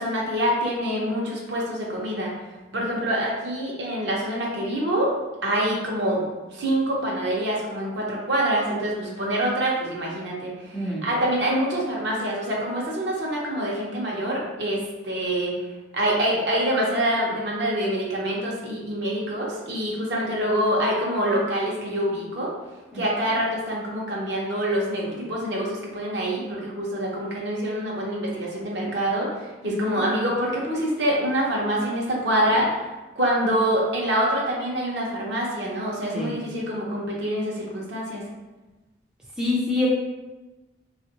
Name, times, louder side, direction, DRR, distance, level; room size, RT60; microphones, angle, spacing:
voice 1, 0.0-2.3 2.7-5.1 5.4-6.2 6.5-15.5 15.9-22.5 22.9-32.9 33.2-38.2, right 1 dB, 60° right, -3 dB, 0.8 m, -25 dB
voice 2, 10.7-11.1 22.9-23.0 29.6-30.0 36.1-36.4 39.4-39.9, left 2 dB, 5° right, -6 dB, 0.4 m, -26 dB
3.3 x 2.4 x 2.8 m, 1.1 s
head